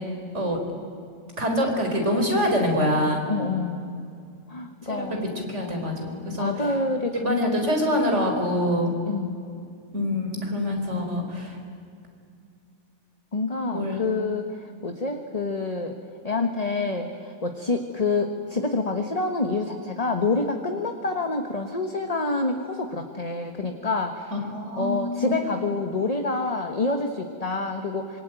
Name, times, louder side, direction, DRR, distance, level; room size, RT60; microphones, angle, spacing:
voice 1, 1.4-3.2 4.9-5.1 5.5-6.5 7.2-8.9 9.9-11.6 13.7-14.0 24.3-25.3, left 1 dB, 40° right, 3 dB, 4.8 m, -25 dB
voice 2, 3.3-4.1 4.5-5.3 6.4-7.5 9.1-9.4 13.3-16.0 16.2-24.4 24.8-28.2, left 3 dB, 25° left, 5 dB, 1.3 m, -27 dB
26.0 x 24.5 x 9.1 m, 2.4 s
omnidirectional pair, 1.9 m